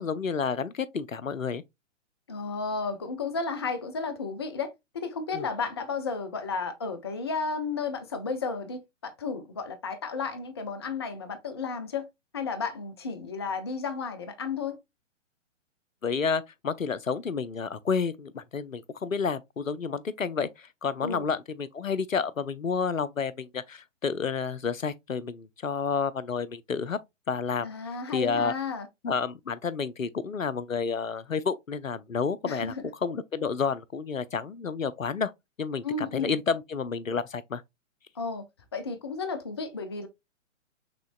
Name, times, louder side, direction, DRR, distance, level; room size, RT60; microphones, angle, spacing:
voice 1, 0.0-1.6 5.3-5.5 16.0-27.0 27.3-27.7 28.1-28.5 29.0-32.7 33.0-35.3 35.6-37.6, left 5 dB, 90° left, 0.6 m, -30 dB
voice 2, 2.3-12.1 12.3-14.8 21.0-21.2 27.6-28.9 32.4-32.8 35.8-36.4 38.2-38.4 38.7-40.1, left 4 dB, 20° left, 0.3 m, -33 dB
6.1 x 3.0 x 2.4 m
figure-of-eight pair, 120°, 38 cm